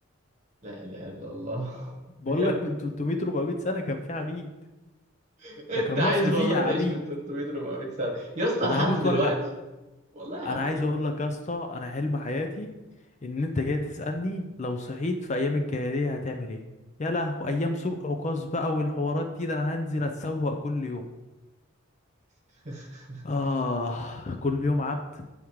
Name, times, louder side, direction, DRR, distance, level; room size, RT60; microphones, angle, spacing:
voice 1, 0.6-1.9 2.3-2.5 5.4-9.4 10.1-10.9 22.6-23.2, equal, 35° right, -1 dB, 1.4 m, -29 dB
voice 2, 2.2-4.5 5.8-7.0 8.6-9.3 10.4-12.7 13.2-16.6 17.0-21.1 23.2-25.0, left 2 dB, 35° left, 5 dB, 0.4 m, -28 dB
8.6 x 3.6 x 4.6 m, 1.1 s
head